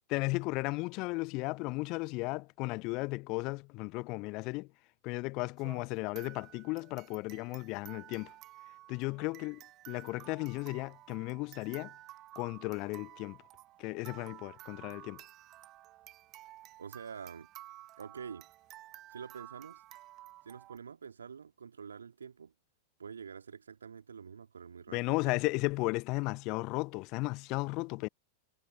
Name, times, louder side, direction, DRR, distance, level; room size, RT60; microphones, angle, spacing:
voice 1, 0.1-4.7 5.0-8.3 8.9-9.6 9.9-11.9 12.4-13.4 13.8-15.2 24.9-28.1, left 25 dB, 40° left, 0.7 m, -35 dB
sound 1, 5.6-20.8, right 15 dB, 35° right, 1.5 m, -53 dB
voice 2, 16.8-17.5 18.0-18.5 19.1-19.8 20.4-22.5 23.0-25.4, right 6 dB, 70° right, 2.2 m, -47 dB
figure-of-eight pair, 90°, 0 cm